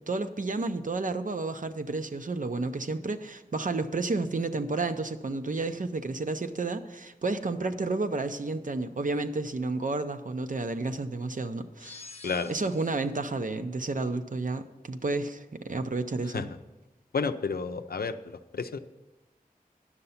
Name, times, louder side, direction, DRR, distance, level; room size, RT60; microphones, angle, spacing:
voice 1, 0.1-12.0 12.5-16.5, right 3 dB, 60° right, 8 dB, 0.6 m, -31 dB
sound 1, 11.8-13.2, left 3 dB, 40° left, 0.7 m, -48 dB
voice 2, 17.1-18.8, left 5 dB, 90° left, 10 dB, 0.5 m, -31 dB
9.7 x 6.8 x 5.6 m, 1.1 s
wide cardioid pair, 55°, 15 cm